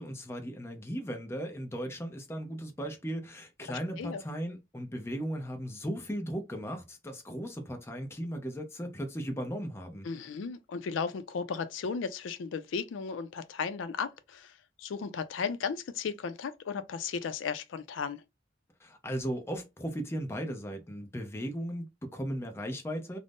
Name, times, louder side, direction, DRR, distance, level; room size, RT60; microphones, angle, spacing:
voice 1, 0.0-10.1 18.8-23.2, equal, 15° left, 0.5 m, -37 dB
voice 2, 3.7-4.2 10.0-18.2, left 5 dB, 85° left, 0.4 m, -35 dB
2.5 x 2.0 x 3.4 m
head